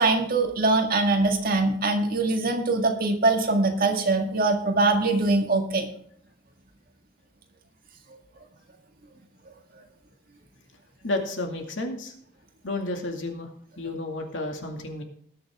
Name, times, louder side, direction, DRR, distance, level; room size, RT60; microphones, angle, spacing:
voice 1, 0.0-5.9, right 3 dB, 50° right, 3 dB, 1.9 m, -23 dB
voice 2, 11.0-12.1 12.6-13.5 13.8-15.0, left 2 dB, 85° left, 3 dB, 2.3 m, -31 dB
19.0 x 7.0 x 3.7 m, 0.64 s
head